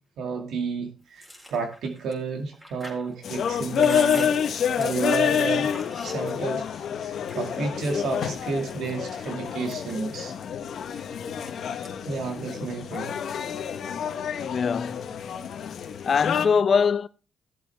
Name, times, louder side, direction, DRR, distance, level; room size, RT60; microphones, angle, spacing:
voice 1, 0.2-5.7 6.0-10.4 12.1-13.2, right 4 dB, 75° right, 2.2 m, -31 dB
Chewing mastication, 1.2-6.6 7.0-8.1 8.6-9.1 9.5-11.5 11.8-12.1 12.4-13.2, equal, 15° right, 4.2 m, -42 dB
sound 1, 3.2-16.5, left 8 dB, 65° left, 1.1 m, -28 dB
voice 2, 14.4-15.1 16.0-17.1, left 6 dB, 50° left, 0.7 m, -22 dB
15.5 x 7.6 x 3.5 m
cardioid pair, 85°, 0 cm